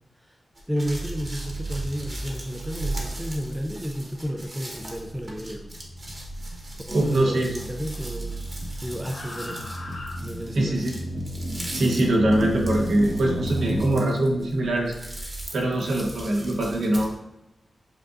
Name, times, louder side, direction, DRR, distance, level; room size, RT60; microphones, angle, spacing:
sound 1, 0.5-17.1, right 1 dB, 35° right, 1.1 m, -41 dB
voice 1, 0.7-5.8 6.9-8.4 8.8-9.7 10.2-10.8, equal, 5° right, 5 dB, 0.4 m, -32 dB
sound 2, 0.8-7.2 7.4-10.8 12.2-13.5 14.1-16.8, right 2 dB, 85° left, 1.2 m, -38 dB
sound 3, 4.9-13.8, equal, 70° right, 1.4 m, -34 dB
voice 2, 6.9-7.5 10.5-10.9 11.7-14.9 15.5-17.1, right 1 dB, 85° right, -1 dB, 1.0 m, -23 dB
7.5 x 2.5 x 2.5 m, 0.92 s
cardioid pair, 85°, 0 cm